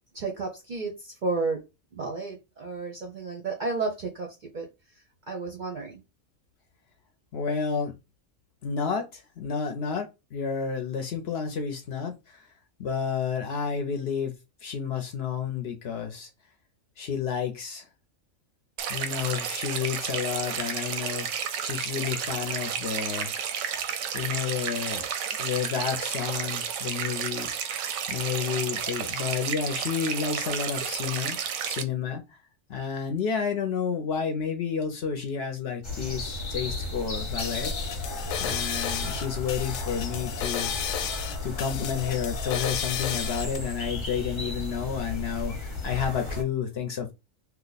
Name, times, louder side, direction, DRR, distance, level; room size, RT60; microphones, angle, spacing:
voice 1, 0.1-1.6 1.9-4.7 5.3-6.0, right 3 dB, 50° right, 0.6 m, -32 dB
voice 2, 7.3-7.9 8.6-12.5 12.8-14.3 14.6-16.3 17.0-17.8 18.9-23.3 24.1-27.8 28.1-32.4 32.7-37.7 38.4-40.7 41.4-47.1, left 7 dB, 60° left, 0.7 m, -31 dB
sound 1, 18.8-31.8, right 8 dB, 85° right, 1.0 m, -32 dB
sound 2, 35.8-46.4, left 2 dB, 25° left, 0.8 m, -34 dB
sound 3, 37.2-43.6, left 8 dB, 90° left, 1.0 m, -33 dB
2.8 x 2.1 x 3.9 m
omnidirectional pair, 1.4 m